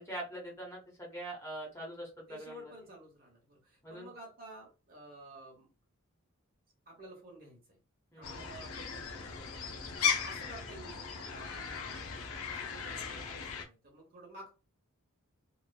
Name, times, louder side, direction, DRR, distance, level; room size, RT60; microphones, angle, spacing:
voice 1, 0.0-2.6 3.8-4.1 8.1-8.4, right 1 dB, 10° left, -4 dB, 0.9 m, -43 dB
voice 2, 2.3-5.7 6.9-7.8 8.2-9.6 10.0-12.1 12.5-14.5, right 1 dB, 40° right, 0 dB, 1.0 m, -52 dB
sound 1, 8.2-13.7, left 6 dB, 70° left, 0.5 m, -37 dB
3.1 x 2.2 x 2.2 m, 0.30 s
head